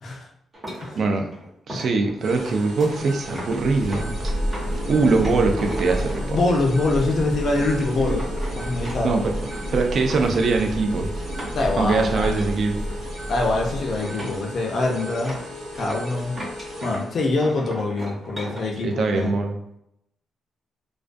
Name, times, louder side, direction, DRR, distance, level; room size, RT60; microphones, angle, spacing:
sound 1, 0.5-6.5 7.2-7.3 7.7-13.2 13.4-13.8 14.0-17.1 17.4-18.6, equal, 20° right, 0.7 m, -38 dB
voice 1, 0.9-1.3 1.7-4.3 4.9-6.4 9.0-9.3 9.7-11.1 11.8-12.8 18.8-19.5, right 3 dB, 45° right, 4 dB, 0.3 m, -22 dB
sound 2, 2.2-17.1, equal, 90° right, 1.0 m, -37 dB
Thunder, 3.3-14.3, equal, 60° right, 0.8 m, -30 dB
voice 2, 6.3-8.3 8.6-9.1 11.5-12.3 13.3-15.4 15.7-16.4 16.8-19.3, left 2 dB, 45° left, 0 dB, 0.4 m, -24 dB
2.3 x 2.2 x 2.5 m, 0.79 s
wide cardioid pair, 175°, 0 cm